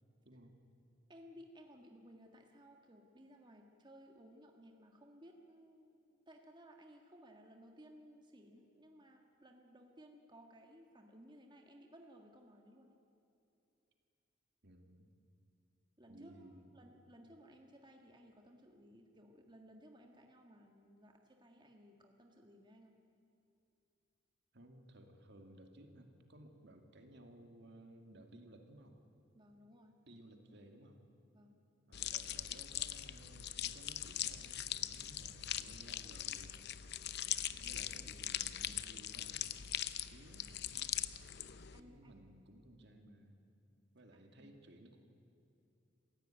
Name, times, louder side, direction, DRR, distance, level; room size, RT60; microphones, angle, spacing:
voice 1, 1.1-13.0 16.0-23.0 29.3-30.0 31.3-31.6 41.7-42.3 44.4-44.5, equal, 25° right, 2 dB, 1.7 m, -59 dB
voice 2, 14.6-15.1 16.1-16.7 24.5-29.0 30.1-31.0 31.9-36.6 37.5-39.5 39.9-41.0 41.8-43.4 43.9-45.0, right 1 dB, 60° right, 4 dB, 2.5 m, -58 dB
sound 1, 31.9-41.8, left 12 dB, 55° left, 0.7 m, -41 dB
27.0 x 16.0 x 9.1 m, 2.7 s
head